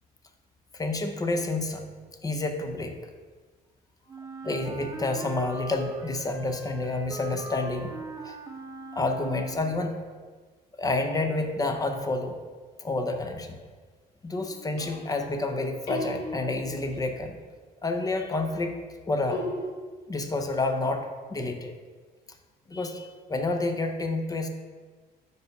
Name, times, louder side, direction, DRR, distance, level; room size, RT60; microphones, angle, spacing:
voice 1, 0.7-1.8 2.2-3.0 4.4-8.0 8.2-8.4 8.9-10.0 10.8-12.4 12.8-13.6 14.2-17.4 17.8-18.8 19.1-19.5 20.1-21.7 22.7-24.5, left 2 dB, 20° left, 6 dB, 0.6 m, -29 dB
Wind instrument woodwind instrument, 4.1-9.9, right 3 dB, 20° right, 0.7 m, -40 dB
sound 1, 14.4-15.5 15.9-17.1 19.3-19.6, left 2 dB, 85° left, 1.8 m, -36 dB
4.8 x 4.8 x 5.2 m, 1.4 s
cardioid pair, 110°, 17 cm